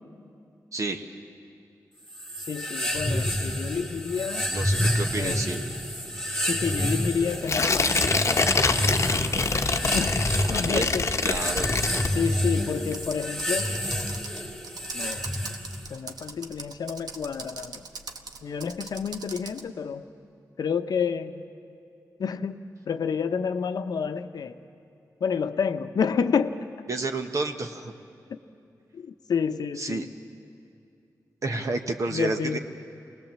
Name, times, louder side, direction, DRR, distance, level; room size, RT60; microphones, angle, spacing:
voice 1, 0.7-1.1 4.5-5.6 10.5-10.9 11.2-11.7 26.9-27.9 29.8-30.1 31.4-32.6, right 3 dB, 55° right, 4 dB, 1.1 m, -30 dB
sound 1, 2.1-15.9, equal, 5° left, 1.8 m, -29 dB
voice 2, 2.5-4.5 5.1-5.4 6.4-9.0 9.9-10.2 10.5-11.1 12.1-13.8 14.9-15.4 15.9-17.8 18.4-20.0 20.6-21.4 22.2-24.6 25.2-26.6 28.3-28.4 28.9-30.1 32.1-32.6, left 6 dB, 80° left, 9 dB, 0.8 m, -29 dB
Tearing, 7.4-12.6 12.9-13.0, left 4 dB, 45° left, 0.9 m, -25 dB
Computer keyboard, 12.9-19.7, right 4 dB, 80° right, 1.1 m, -41 dB
25.0 x 19.0 x 7.5 m, 2.6 s
cardioid pair, 75°, 7 cm